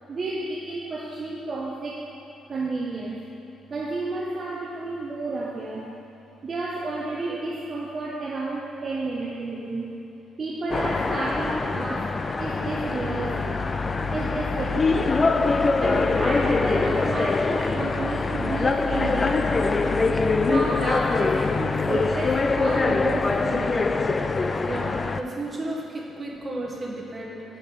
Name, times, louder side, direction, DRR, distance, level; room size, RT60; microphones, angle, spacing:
voice 1, 0.1-2.0 2.5-3.2 3.7-5.9 6.4-10.0 10.4-13.7 14.1-15.3 15.8-20.1 20.5-24.1, right 2 dB, 40° right, -3 dB, 0.8 m, -31 dB
sound 1, 10.7-25.2, left 3 dB, 30° left, 0.3 m, -24 dB
voice 2, 24.6-27.4, right 1 dB, 25° right, -2 dB, 1.4 m, -33 dB
5.4 x 5.4 x 6.3 m, 2.9 s
cardioid pair, 90°, 0 cm